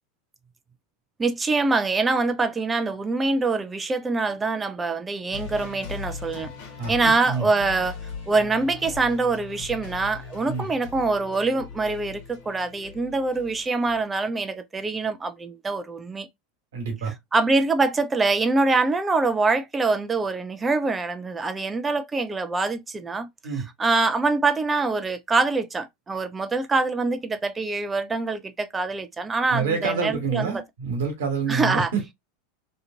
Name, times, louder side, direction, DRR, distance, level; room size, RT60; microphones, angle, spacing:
voice 1, 1.2-6.5 6.9-8.0 8.3-16.3 17.3-23.3 23.8-30.6 31.5-31.9, right 3 dB, 15° right, 0.5 m, -24 dB
sound 1, 5.3-14.0, left 5 dB, 55° left, 1.3 m, -39 dB
voice 2, 6.8-7.5 10.5-10.7 16.7-17.1 23.4-23.6 29.5-32.0, right 5 dB, 70° right, 1.4 m, -27 dB
2.9 x 2.5 x 2.5 m
figure-of-eight pair, 85°, 0 cm